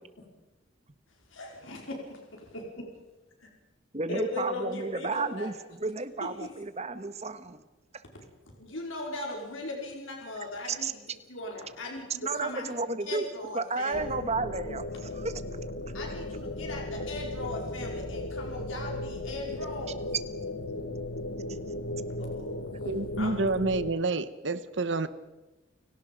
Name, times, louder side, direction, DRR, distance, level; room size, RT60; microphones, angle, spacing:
voice 1, 1.3-2.9 3.4-3.5 4.1-5.5 8.5-11.0 11.3-12.6 13.1-14.2 15.9-20.0 22.2-23.6, left 2 dB, 80° left, 1 dB, 4.8 m, -38 dB
voice 2, 3.9-7.6 7.9-8.0 10.7-10.9 12.2-13.3 13.5-15.3 21.5-21.6, right 3 dB, 35° right, 11 dB, 1.4 m, -32 dB
sound 1, 13.9-23.9, left 1 dB, 60° left, 1.5 m, -36 dB
voice 3, 22.8-25.1, right 3 dB, 65° right, 13 dB, 1.1 m, -29 dB
30.0 x 18.0 x 5.3 m, 1.1 s
head